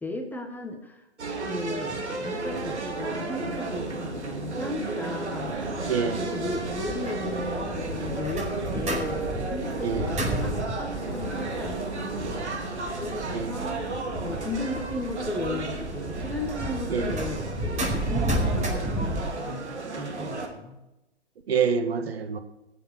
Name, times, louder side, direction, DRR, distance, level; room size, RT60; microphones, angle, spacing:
voice 1, 0.0-1.0 1.4-5.5 6.2-12.4 12.9-20.8, left 2 dB, 5° left, 4 dB, 1.2 m, -36 dB
sound 1, 1.2-20.5, right 3 dB, 85° right, 3.2 m, -33 dB
sound 2, 5.5-19.2, right 1 dB, 20° right, 5.2 m, -33 dB
voice 2, 5.9-6.2 9.8-10.1 13.3-13.5 16.9-17.1 21.5-22.4, right 6 dB, 65° right, 8 dB, 1.9 m, -26 dB
20.5 x 7.5 x 6.5 m, 0.96 s
hypercardioid pair, 135°, 33 cm